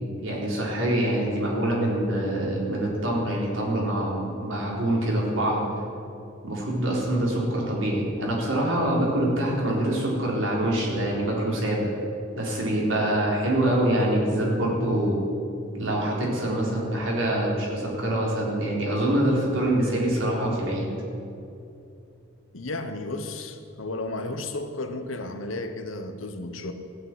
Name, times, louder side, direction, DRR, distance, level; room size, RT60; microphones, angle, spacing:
voice 1, 0.0-5.7 6.4-11.9 12.3-15.2 15.7-20.9, right 1 dB, 75° right, -3 dB, 3.7 m, -25 dB
voice 2, 22.5-26.7, left 2 dB, 85° left, 7 dB, 1.1 m, -33 dB
15.5 x 6.8 x 9.1 m, 2.7 s
head